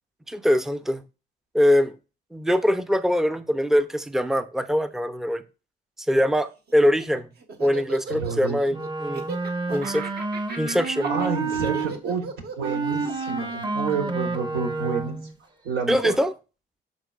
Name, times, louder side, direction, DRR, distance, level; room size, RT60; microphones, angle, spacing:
voice 1, 0.3-1.0 1.5-1.9 2.3-5.4 6.1-7.3 7.6-9.2 9.7-10.1 10.6-11.1 15.9-16.3, equal, ahead, 0.6 m, -22 dB
Laughter, 6.7-15.1, right 4 dB, 55° right, 1.5 m, -38 dB
voice 2, 8.1-8.6 11.0-12.3 12.6-15.2 15.6-16.1, right 5 dB, 85° right, 3.4 m, -29 dB
Wind instrument woodwind instrument, 8.7-11.9 12.6-15.3, right 3 dB, 20° right, 1.0 m, -29 dB
12.5 x 4.5 x 2.4 m
cardioid pair, 90°, 20 cm